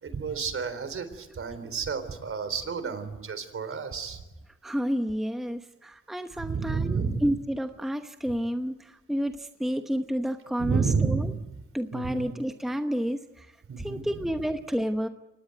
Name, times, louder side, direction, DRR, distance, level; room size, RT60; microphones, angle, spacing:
voice 1, 0.0-4.2 6.4-7.3 10.6-11.4 11.9-12.3 13.7-14.0, right 5 dB, 45° right, 11 dB, 3.9 m, -30 dB
voice 2, 4.6-11.3 11.7-15.1, equal, ahead, 7 dB, 1.0 m, -30 dB
25.0 x 19.5 x 9.2 m, 1.0 s
cardioid pair, 90°, 30 cm